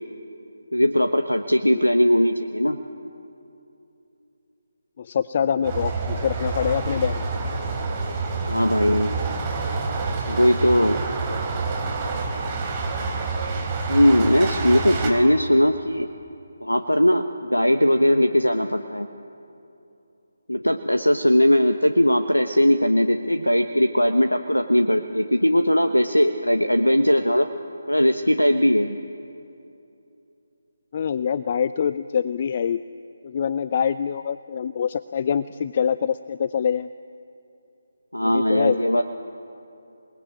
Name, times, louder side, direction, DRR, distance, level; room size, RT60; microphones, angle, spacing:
voice 1, 0.7-2.8 8.5-9.2 10.3-11.0 13.9-16.1 16.6-19.1 20.5-27.5 27.9-29.0 38.1-39.0, equal, 90° left, 7 dB, 1.3 m, -19 dB
voice 2, 5.0-7.3 30.9-32.8 33.2-36.9 38.2-39.0, left 7 dB, 35° left, 15 dB, 0.5 m, -25 dB
sound 1, 5.6-15.1, right 3 dB, 20° right, 4.1 m, -27 dB
28.5 x 20.5 x 8.8 m, 2.8 s
figure-of-eight pair, 150°, 0 cm